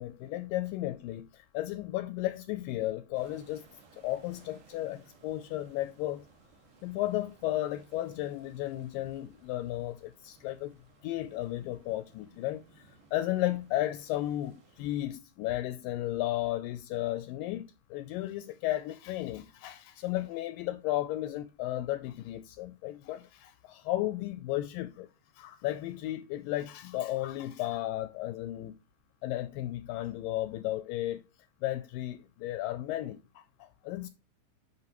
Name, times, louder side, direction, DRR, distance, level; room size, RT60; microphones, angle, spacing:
voice 1, 0.0-3.7 4.0-6.2 6.8-10.8 11.0-25.1 25.4-28.7 29.2-31.2 31.6-34.1, left 15 dB, 80° left, 2.1 m, -34 dB
sound 1, 3.1-15.1, right 4 dB, 65° right, 3.2 m, -61 dB
9.6 x 5.4 x 3.0 m
omnidirectional pair, 4.1 m